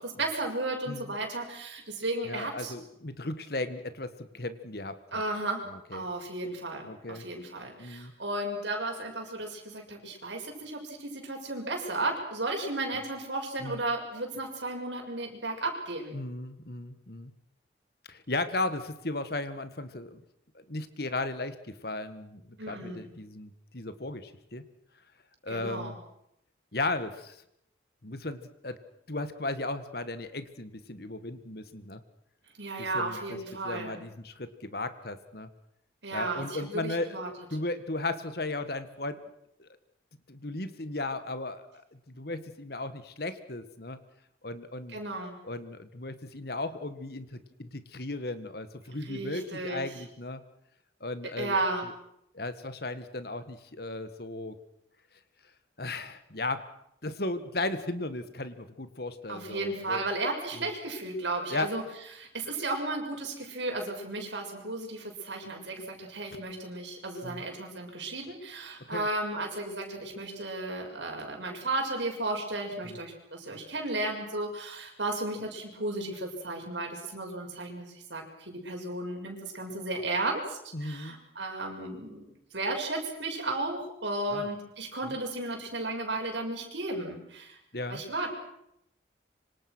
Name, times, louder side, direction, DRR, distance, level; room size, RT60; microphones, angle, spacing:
voice 1, 0.0-2.7 5.1-5.7 5.9-16.2 22.6-23.0 25.5-26.0 32.6-34.0 36.0-37.3 44.9-45.4 49.0-49.8 51.2-51.9 59.3-61.8 62.2-87.6 87.9-88.3, right 2 dB, 70° right, 2 dB, 6.7 m, -34 dB
voice 2, 0.9-1.2 2.2-5.2 5.7-6.1 6.8-7.2 7.8-8.1 13.6-13.8 16.1-17.3 18.1-20.2 20.5-24.6 25.4-26.0 26.7-27.4 28.0-28.8 29.1-32.0 32.8-33.2 33.6-35.5 36.1-37.2 37.5-39.2 39.6-39.7 40.3-44.0 44.4-45.0 45.4-50.4 51.0-51.5 52.3-54.6 55.8-56.6 57.0-60.0 60.5-60.7 61.5-61.7 67.2-67.4 68.9-69.1 72.8-73.0 80.7-81.2 84.3-84.5 85.1-85.2 87.7-88.0, left 2 dB, 55° left, 11 dB, 1.8 m, -36 dB
26.0 x 25.5 x 6.3 m, 0.79 s
head